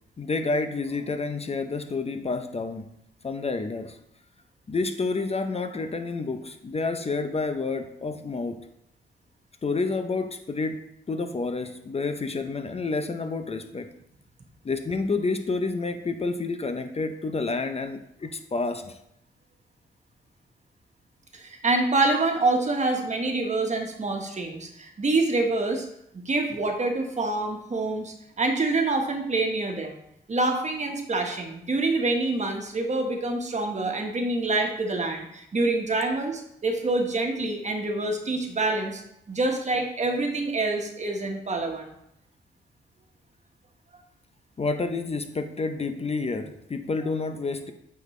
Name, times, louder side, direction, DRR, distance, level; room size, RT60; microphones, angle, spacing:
voice 1, 0.2-2.9 3.2-4.0 4.7-8.6 9.6-10.8 11.1-13.9 14.6-19.0 44.6-47.7, left 3 dB, 35° left, 8 dB, 0.7 m, -29 dB
voice 2, 21.3-25.9 26.2-30.0 30.3-39.0 39.3-41.9, right 2 dB, 35° right, 3 dB, 1.3 m, -26 dB
8.6 x 4.2 x 3.2 m, 0.79 s
cardioid pair, 65°, 19 cm